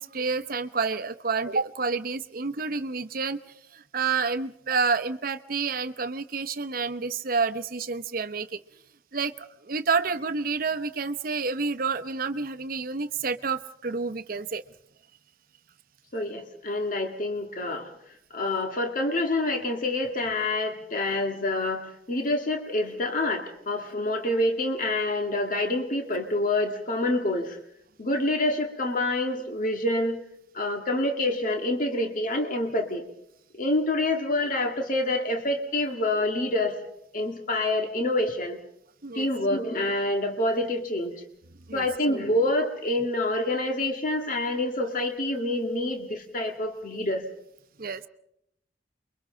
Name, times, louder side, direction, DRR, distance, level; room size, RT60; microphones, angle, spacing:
voice 1, 0.0-8.6 9.1-14.6 39.0-39.3 41.7-41.9 47.8-48.0, right 4 dB, 55° right, 12 dB, 0.8 m, -29 dB
voice 2, 16.1-17.9 18.3-27.6 28.0-30.2 30.5-33.1 33.5-36.8 37.1-38.6 39.1-41.2 41.7-47.2, left 1 dB, 50° left, 4 dB, 1.9 m, -27 dB
29.0 x 23.0 x 3.9 m, 0.76 s
head